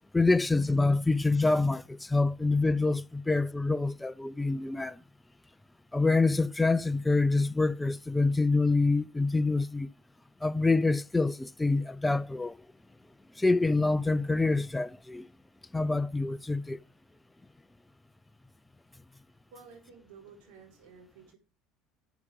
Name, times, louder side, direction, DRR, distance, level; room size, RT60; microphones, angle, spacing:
voice 1, 0.1-5.0 5.9-9.9 10.4-12.5 13.4-15.3 15.7-16.8, left 3 dB, 10° left, 0.5 m, -26 dB
voice 2, 19.5-21.4, right 5 dB, 75° right, 4.4 m, -53 dB
11.5 x 8.2 x 3.6 m
hypercardioid pair, 80°, 0 cm